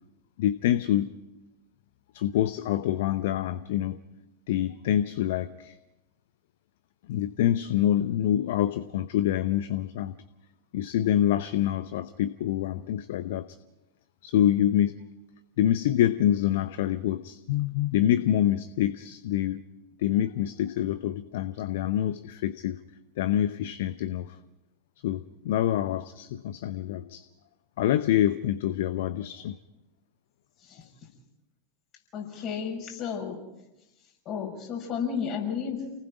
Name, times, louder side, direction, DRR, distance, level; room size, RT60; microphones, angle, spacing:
voice 1, 0.4-1.1 2.1-4.0 4.5-5.8 7.1-10.1 10.7-13.6 14.2-15.0 15.6-19.6 20.0-22.8 23.2-24.4 25.0-27.2 27.8-29.6, left 11 dB, 55° left, 15 dB, 0.7 m, -26 dB
voice 2, 32.1-33.4 34.2-35.8, left 7 dB, 35° left, 1 dB, 6.2 m, -32 dB
29.0 x 19.5 x 4.9 m, 0.96 s
figure-of-eight pair, 90°, 0 cm